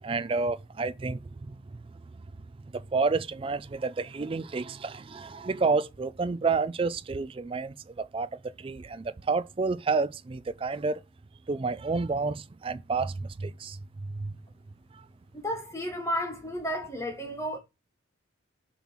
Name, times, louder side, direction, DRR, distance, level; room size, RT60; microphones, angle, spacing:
voice 1, 0.0-1.6 2.7-11.0 11.5-13.8 14.1-14.3, right 4 dB, 25° right, 0.3 m, -30 dB
voice 2, 15.4-17.6, equal, 15° left, 1.4 m, -32 dB
7.0 x 3.1 x 5.7 m
head